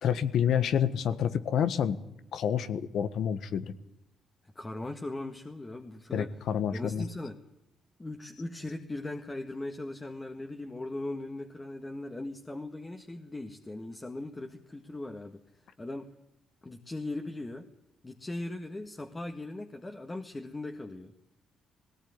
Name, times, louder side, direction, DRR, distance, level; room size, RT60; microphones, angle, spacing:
voice 1, 0.0-2.0 2.3-3.7 6.1-7.0, left 8 dB, 70° left, 13 dB, 1.4 m, -28 dB
voice 2, 4.6-6.4 6.7-7.4 8.0-15.4 15.8-16.1 16.6-17.7 18.0-21.1, left 2 dB, 20° left, 4 dB, 1.8 m, -39 dB
19.0 x 18.0 x 9.7 m, 0.86 s
cardioid pair, 90°, 0 cm